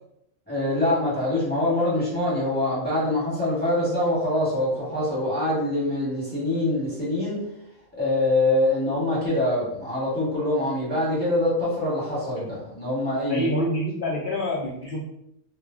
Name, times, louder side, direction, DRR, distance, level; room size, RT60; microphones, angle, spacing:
voice 1, 0.5-7.4 8.0-13.5, left 1 dB, 10° left, -7 dB, 0.9 m, -24 dB
voice 2, 13.3-15.0, left 1 dB, 65° left, -2 dB, 0.5 m, -26 dB
2.3 x 2.1 x 3.5 m, 0.78 s
omnidirectional pair, 1.3 m